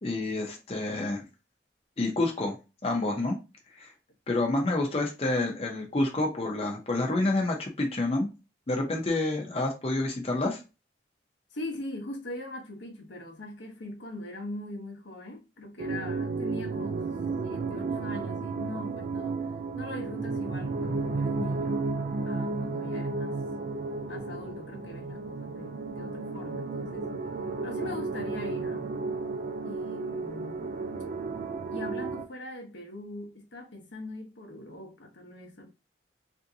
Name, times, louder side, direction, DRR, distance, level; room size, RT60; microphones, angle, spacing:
voice 1, 0.0-1.2 2.0-2.6 2.8-3.4 3.7-3.9 4.3-8.3 8.7-10.6, left 2 dB, 35° left, 0.6 m, -28 dB
voice 2, 11.5-17.1 17.4-21.8 22.2-23.4 24.1-27.1 27.6-28.9 29.6-30.7 31.7-35.7, left 1 dB, 85° left, 0.9 m, -41 dB
sound 1, 15.8-32.3, right 3 dB, 45° right, 0.3 m, -33 dB
3.4 x 2.7 x 2.7 m
head